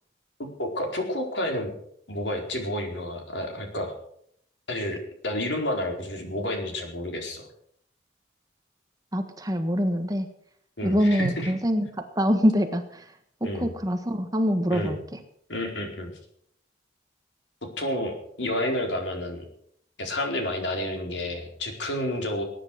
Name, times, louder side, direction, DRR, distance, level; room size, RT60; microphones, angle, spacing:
voice 1, 0.4-1.7 2.1-4.0 4.7-7.5 10.8-11.5 13.4-13.7 14.7-14.9 15.5-16.1 17.8-19.4 20.0-22.4, left 1 dB, 75° left, 2 dB, 4.5 m, -30 dB
voice 2, 9.1-10.3 10.8-11.9 12.1-13.1 13.4-15.2, equal, 20° right, 6 dB, 1.5 m, -24 dB
19.5 x 10.0 x 6.5 m, 0.67 s
head